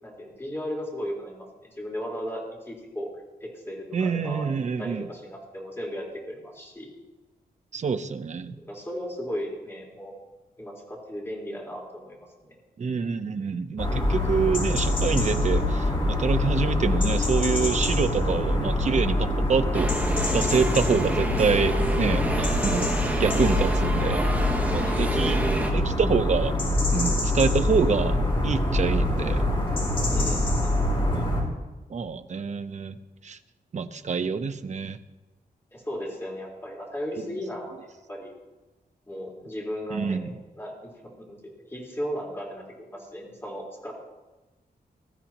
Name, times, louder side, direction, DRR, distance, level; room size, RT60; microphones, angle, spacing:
voice 1, 0.0-3.1 3.4-6.9 8.6-10.2 10.6-12.6 23.0-23.5 24.8-25.5 30.1-30.7 35.7-38.3 39.1-40.2 40.5-40.9 41.2-43.9, equal, 15° left, -4 dB, 4.1 m, -36 dB
voice 2, 3.9-5.1 7.7-8.5 12.8-15.9 16.2-19.9 20.3-22.9 23.2-24.2 24.7-25.4 25.7-26.5 26.9-28.2 28.4-29.5 31.1-31.3 31.9-33.0 33.2-33.4 33.7-35.0 37.2-37.3 39.9-40.3, right 5 dB, 45° right, 10 dB, 0.7 m, -26 dB
sound 1, 13.8-31.4, left 1 dB, 35° left, 4.6 m, -25 dB
sound 2, 19.7-25.7, right 1 dB, 10° right, 2.0 m, -29 dB
21.0 x 14.0 x 3.0 m, 1.1 s
wide cardioid pair, 160°, 16 cm